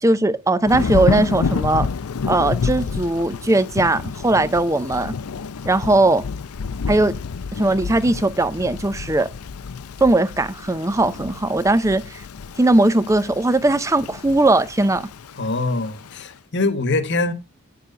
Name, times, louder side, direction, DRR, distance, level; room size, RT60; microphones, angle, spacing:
voice 1, 0.0-1.9 2.3-5.1 5.7-6.2 6.9-7.1 7.6-9.3 10.0-12.2 12.6-15.1, right 2 dB, 15° right, 0.5 m, -19 dB
Thunder / Rain, 0.6-16.2, left 5 dB, 90° left, 0.6 m, -29 dB
voice 2, 15.4-17.3, left 2 dB, 55° left, 1.3 m, -23 dB
9.3 x 6.8 x 5.1 m
head